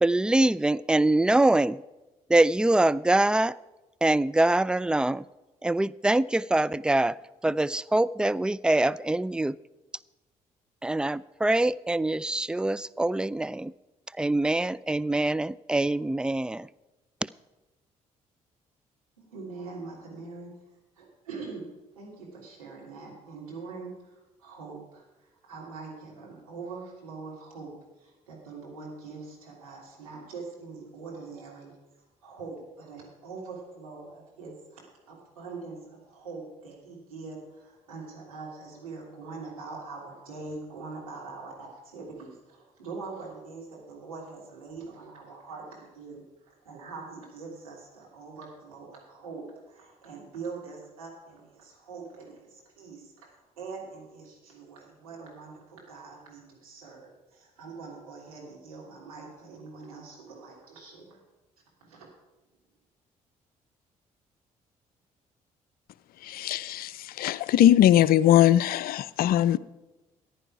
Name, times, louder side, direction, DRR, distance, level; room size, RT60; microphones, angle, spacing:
voice 1, 0.0-1.8 2.3-3.6 4.0-5.3 5.6-9.6 10.8-13.7 14.1-16.7 17.2-17.3, right 2 dB, 5° right, 19 dB, 0.3 m, -24 dB
voice 2, 19.2-21.7 21.9-61.2 61.8-62.1, right 4 dB, 85° right, -4 dB, 3.1 m, -43 dB
voice 3, 66.2-69.6, left 12 dB, 55° left, 19 dB, 0.5 m, -21 dB
14.5 x 10.0 x 4.8 m, 1.1 s
figure-of-eight pair, 45°, 18 cm